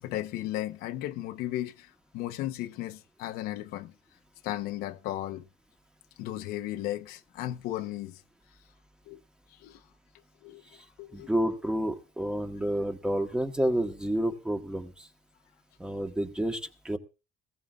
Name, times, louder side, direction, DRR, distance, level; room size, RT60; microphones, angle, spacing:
voice 1, 0.0-3.9 4.4-5.4 6.2-8.2 9.1-9.2 9.6-9.8 10.4-10.6 11.0-11.3, left 14 dB, 85° left, 1.0 m, -35 dB
voice 2, 11.1-15.1 15.8-17.0, right 1 dB, 5° right, 1.4 m, -30 dB
20.0 x 16.5 x 2.5 m
cardioid pair, 165°, 15 cm